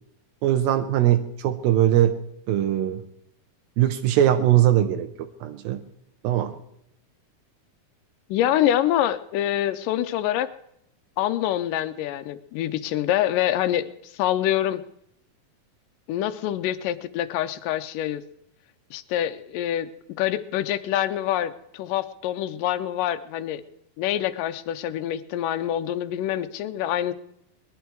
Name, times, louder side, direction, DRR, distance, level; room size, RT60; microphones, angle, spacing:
voice 1, 0.4-2.2 2.5-3.0 3.8-5.8 6.2-6.5, right 12 dB, 85° right, 7 dB, 2.5 m, -21 dB
voice 2, 8.3-10.5 11.2-13.9 14.2-14.8 16.1-18.2 18.9-19.9 20.2-23.6 24.0-27.1, left 12 dB, 75° left, 12 dB, 2.2 m, -25 dB
20.0 x 11.5 x 4.6 m, 0.76 s
omnidirectional pair, 4.1 m